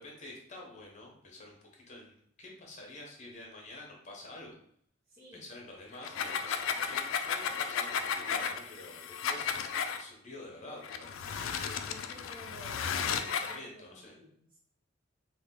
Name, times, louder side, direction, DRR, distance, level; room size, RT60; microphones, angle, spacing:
voice 1, 0.0-4.5 5.3-11.9 13.1-14.1, left 2 dB, 40° left, -1 dB, 0.8 m, -48 dB
voice 2, 5.1-5.4 11.8-14.6, equal, 50° right, -5 dB, 0.9 m, -53 dB
sound 1, 5.9-10.0 10.8-13.6, left 7 dB, 85° left, 0.3 m, -34 dB
3.2 x 2.2 x 3.7 m, 0.66 s
head